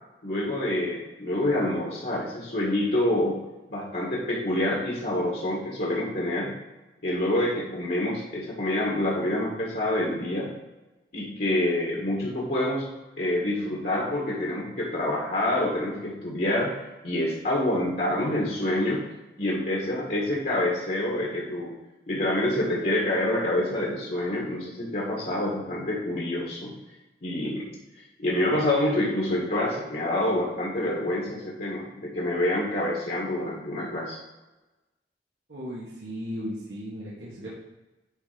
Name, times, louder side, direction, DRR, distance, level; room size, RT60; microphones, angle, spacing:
voice 1, 0.2-3.4 3.7-6.5 7.0-10.5 11.1-12.9 13.2-19.0 19.4-21.7 22.1-26.7 27.2-34.2, left 1 dB, 60° left, -4 dB, 1.8 m, -27 dB
voice 2, 35.5-37.5, equal, 75° right, -7 dB, 1.7 m, -36 dB
10.0 x 3.7 x 5.1 m, 1.1 s
head